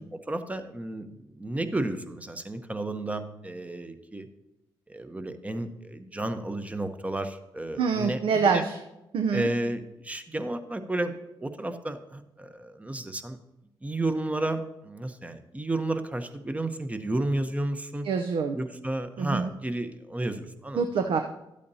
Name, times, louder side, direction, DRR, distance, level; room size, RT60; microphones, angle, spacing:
voice 1, 0.0-4.3 4.9-8.6 9.3-13.4 13.8-18.0 18.5-20.9, right 2 dB, 15° right, 9 dB, 0.8 m, -32 dB
voice 2, 7.8-8.8 9.1-9.5 18.0-18.6 19.2-19.5 20.7-21.2, right 5 dB, 70° right, 6 dB, 0.6 m, -25 dB
12.0 x 8.4 x 2.8 m, 0.93 s
cardioid pair, 65°, 9 cm